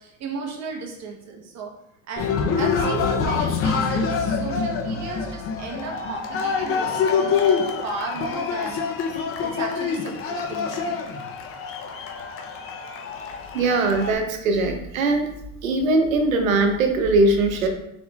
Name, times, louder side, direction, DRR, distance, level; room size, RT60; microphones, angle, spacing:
voice 1, 0.0-1.7 2.1-2.3 2.6-9.0 9.4-11.0, right 4 dB, 40° right, 2 dB, 1.0 m, -35 dB
Cheering, 2.2-14.2, left 5 dB, 35° left, 0.6 m, -26 dB
voice 2, 13.5-15.3 15.6-17.7, right 2 dB, 90° right, 5 dB, 0.8 m, -20 dB
4.1 x 3.6 x 2.3 m, 0.81 s
hypercardioid pair, 90°, 39 cm